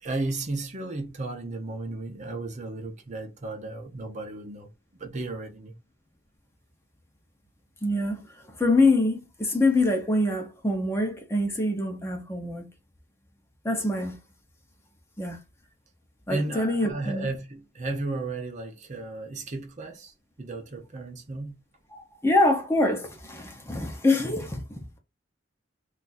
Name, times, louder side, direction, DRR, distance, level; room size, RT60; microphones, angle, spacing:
voice 1, 0.0-4.7 5.0-5.7 16.3-20.1 20.4-21.6, right 2 dB, 40° right, 0.6 m, -34 dB
voice 2, 7.8-8.2 8.6-12.7 13.6-14.1 15.2-15.4 16.3-17.3 21.9-24.8, left 2 dB, 15° left, 0.7 m, -25 dB
2.5 x 2.4 x 4.0 m
head